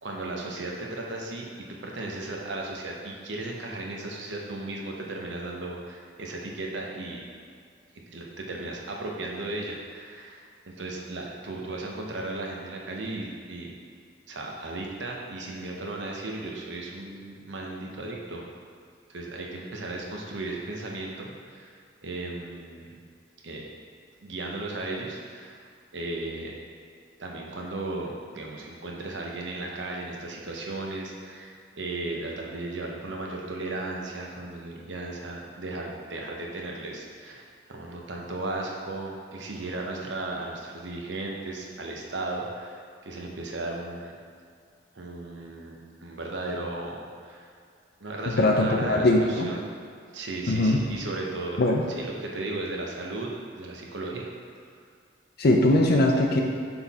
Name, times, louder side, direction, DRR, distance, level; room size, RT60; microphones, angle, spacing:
voice 1, 0.0-7.2 7.9-13.7 14.3-18.4 19.1-21.7 22.0-22.9 23.4-23.6 24.2-25.7 25.9-26.5 27.2-44.2 44.9-47.5 48.0-49.6 50.1-51.6 51.9-54.3, right 2 dB, 75° right, -1 dB, 0.9 m, -35 dB
voice 2, 48.4-49.5 50.5-50.8 51.6-51.8 55.4-56.4, left 1 dB, 55° left, 1 dB, 0.5 m, -21 dB
6.0 x 3.9 x 4.2 m, 2.2 s
head